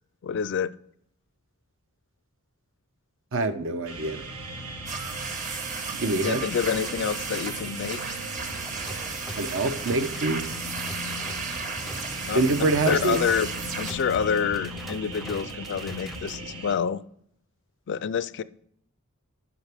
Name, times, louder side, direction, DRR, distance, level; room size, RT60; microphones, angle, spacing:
voice 1, 0.2-0.7 6.1-8.0 12.3-13.5 13.8-17.0 17.9-18.4, left 7 dB, 55° left, 17 dB, 0.4 m, -27 dB
voice 2, 3.3-4.2 6.0-6.4 9.4-10.7 12.3-13.2, right 3 dB, 65° right, 10 dB, 0.7 m, -25 dB
sound 1, 3.8-16.7, right 1 dB, 90° right, 1.4 m, -38 dB
sound 2, 4.9-13.9, right 4 dB, 35° right, 1.0 m, -35 dB
sound 3, 8.4-16.4, equal, ahead, 0.5 m, -42 dB
11.0 x 5.9 x 3.4 m, 0.69 s
head